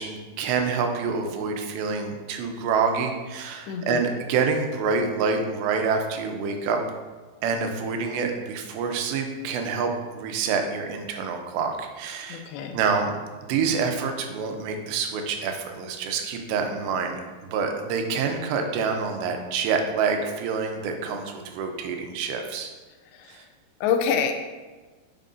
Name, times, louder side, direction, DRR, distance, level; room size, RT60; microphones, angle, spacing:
voice 1, 0.0-6.8 7.4-12.5 12.7-13.1 13.5-22.7 23.3-23.4, right 5 dB, 85° right, 4 dB, 2.9 m, -27 dB
voice 2, 3.7-4.1 12.3-12.8 23.1-23.4 23.8-24.3, left 7 dB, 85° left, 5 dB, 2.8 m, -26 dB
9.0 x 5.8 x 2.6 m, 1.3 s
omnidirectional pair, 4.9 m